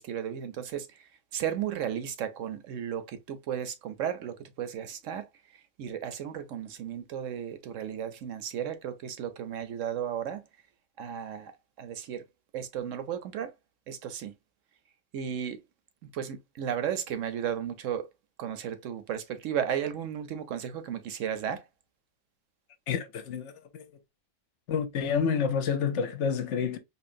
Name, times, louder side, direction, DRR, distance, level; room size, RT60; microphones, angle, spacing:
voice 1, 0.0-10.4 11.0-11.5 11.8-12.2 12.5-13.5 13.9-14.3 15.1-15.6 16.0-18.1 18.4-21.7, right 9 dB, 70° right, 1.0 m, -34 dB
voice 2, 22.9-23.8 24.7-26.8, left 6 dB, 60° left, 0.9 m, -29 dB
4.4 x 2.9 x 2.5 m
omnidirectional pair, 1.5 m